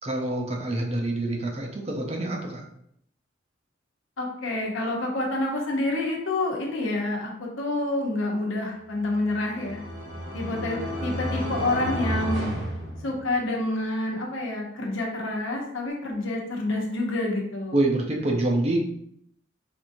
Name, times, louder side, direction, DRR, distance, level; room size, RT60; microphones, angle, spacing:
voice 1, 0.0-2.6 17.7-18.8, right 2 dB, 30° right, 1 dB, 0.6 m, -26 dB
voice 2, 4.2-9.9 10.3-12.5 13.0-17.7, left 2 dB, 90° left, 0 dB, 0.9 m, -28 dB
sound 1, 9.1-13.6, equal, 60° right, 1.1 m, -32 dB
4.4 x 2.6 x 2.6 m, 0.69 s
head